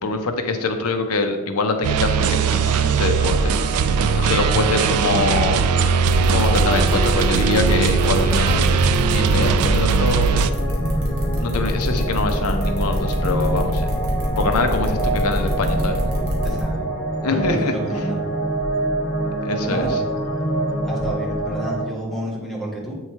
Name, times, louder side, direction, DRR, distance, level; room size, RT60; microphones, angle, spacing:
voice 1, 0.0-3.5 4.1-5.7 6.3-10.6 11.4-13.9 14.4-16.0 17.2-18.0 19.4-20.0, left 3 dB, 85° left, 5 dB, 0.7 m, -24 dB
sound 1, 1.8-10.5, right 6 dB, 90° right, 0.3 m, -19 dB
sound 2, 2.2-21.8, right 1 dB, 45° left, 1.3 m, -27 dB
sound 3, 6.1-16.6, equal, 65° right, 1.9 m, -24 dB
voice 2, 16.4-16.8 17.3-18.2 19.6-20.0 20.8-22.9, right 1 dB, ahead, -6 dB, 1.4 m, -30 dB
8.1 x 3.2 x 4.4 m, 1.3 s
head